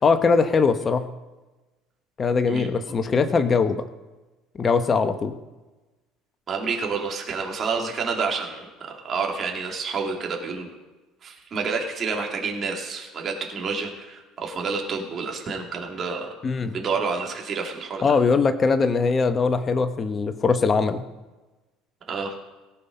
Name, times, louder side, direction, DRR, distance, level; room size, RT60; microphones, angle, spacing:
voice 1, 0.0-1.1 2.2-3.8 4.6-5.4 16.4-16.8 18.0-21.0, left 4 dB, 35° left, 8 dB, 1.0 m, -21 dB
voice 2, 6.5-10.7 11.2-16.3 16.7-18.2 22.1-22.4, right 5 dB, 45° right, 1 dB, 2.6 m, -29 dB
17.5 x 5.9 x 5.4 m, 1.2 s
hypercardioid pair, 70°, 0 cm